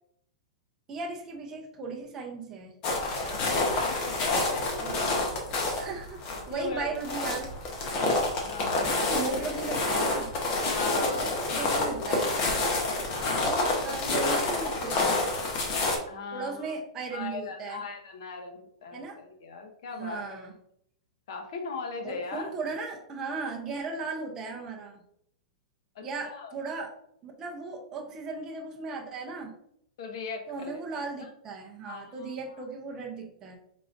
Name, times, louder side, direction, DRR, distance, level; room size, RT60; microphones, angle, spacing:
voice 1, 0.9-2.8 4.8-5.0 5.7-7.5 8.8-10.3 11.0-12.4 13.3-15.2 16.3-17.8 18.9-19.2 20.0-20.5 22.0-25.0 26.0-26.9 27.2-29.5 30.5-33.6, right 4 dB, 15° right, 0 dB, 0.6 m, -36 dB
sound 1, 2.8-16.0, left 2 dB, 30° left, 0.8 m, -28 dB
voice 2, 3.3-4.7 6.5-7.0 8.4-9.1 10.6-12.1 12.6-13.4 16.1-16.7 17.1-20.4 21.3-22.5 25.9-26.1 26.3-26.5 30.0-31.0 31.8-32.7, left 4 dB, 55° left, 3 dB, 0.8 m, -39 dB
4.7 x 3.8 x 2.5 m, 0.71 s
supercardioid pair, 175°, 3 cm